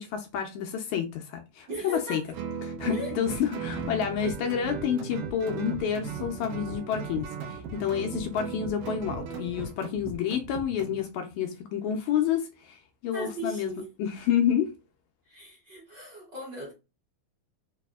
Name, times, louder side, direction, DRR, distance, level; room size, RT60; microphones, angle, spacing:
voice 1, 0.0-2.2 2.6-13.7 14.0-14.7, left 8 dB, 80° left, 1.8 m, -29 dB
voice 2, 1.7-2.2 2.9-3.1 13.1-13.9 15.3-16.7, equal, 45° right, 1.6 m, -37 dB
Guitar, 2.3-9.8, right 7 dB, 90° right, 2.2 m, -37 dB
sound 1, 3.3-11.0, right 4 dB, 70° right, 2.2 m, -41 dB
4.9 x 2.6 x 2.3 m
omnidirectional pair, 3.5 m